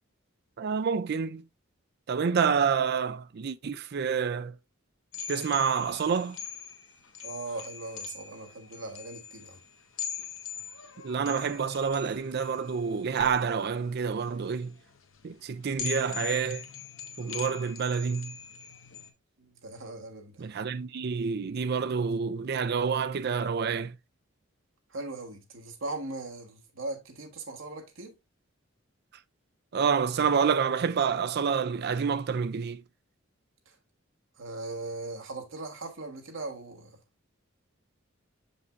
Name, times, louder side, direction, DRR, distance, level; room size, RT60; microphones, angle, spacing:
voice 1, 0.6-1.4 2.1-4.5 5.3-6.4 11.0-14.7 15.2-16.6 17.2-18.3 20.4-23.9 29.7-32.8, right 6 dB, 50° right, 0.4 m, -28 dB
sound 1, 5.1-19.1, left 7 dB, 80° left, 1.2 m, -42 dB
voice 2, 7.2-9.6 19.5-20.4 24.9-28.1 33.7-33.8 34.4-37.0, right 2 dB, 75° right, 1.6 m, -39 dB
6.8 x 5.4 x 2.5 m
head